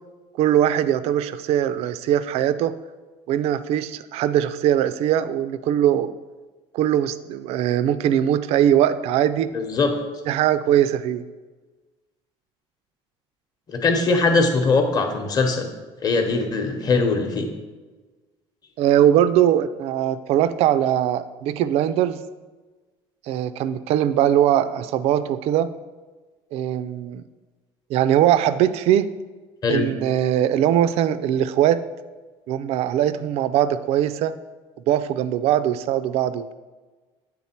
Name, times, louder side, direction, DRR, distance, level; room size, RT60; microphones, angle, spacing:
voice 1, 0.4-2.7 3.3-6.1 6.7-9.5 10.3-11.2 18.8-22.2 23.3-25.7 26.5-27.2 27.9-29.1 29.7-31.8 32.5-34.3 34.9-36.5, right 11 dB, 60° right, 13 dB, 0.4 m, -21 dB
voice 2, 9.5-9.9 13.7-15.7 16.0-17.5 29.6-29.8, left 3 dB, 35° left, 4 dB, 0.9 m, -21 dB
8.5 x 3.7 x 4.3 m, 1.3 s
cardioid pair, 140°, 12 cm